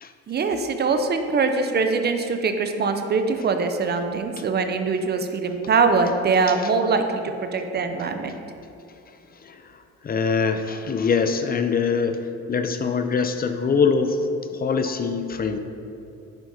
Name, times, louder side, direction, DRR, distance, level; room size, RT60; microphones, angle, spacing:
voice 1, 0.3-8.3, right 4 dB, 35° right, 7 dB, 0.5 m, -23 dB
voice 2, 9.4-14.2 14.5-15.6, left 5 dB, 30° left, 8 dB, 0.4 m, -23 dB
7.5 x 4.6 x 2.7 m, 2.6 s
cardioid pair, 90°, 30 cm